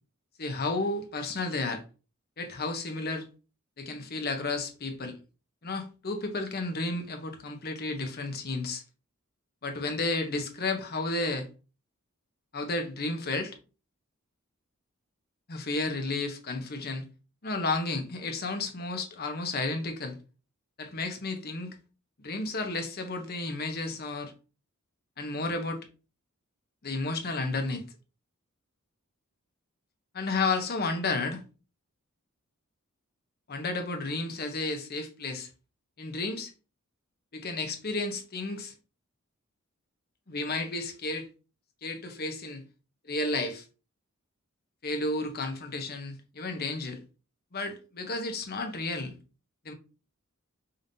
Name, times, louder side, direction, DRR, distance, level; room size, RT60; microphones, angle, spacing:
voice 1, 0.4-1.8 2.4-3.2 3.8-5.2 5.6-8.8 9.6-11.5 12.5-13.6 15.5-17.0 17.4-20.2 20.8-21.7 22.2-24.3 25.2-25.8 26.8-27.8 30.1-31.4 33.5-35.5 36.0-36.5 37.3-38.7 40.3-41.3 41.8-42.6 43.1-43.6 44.8-47.0 47.5-49.2 49.6-49.7, left 3 dB, 45° left, 0.9 m, -32 dB
5.1 x 2.8 x 2.7 m
head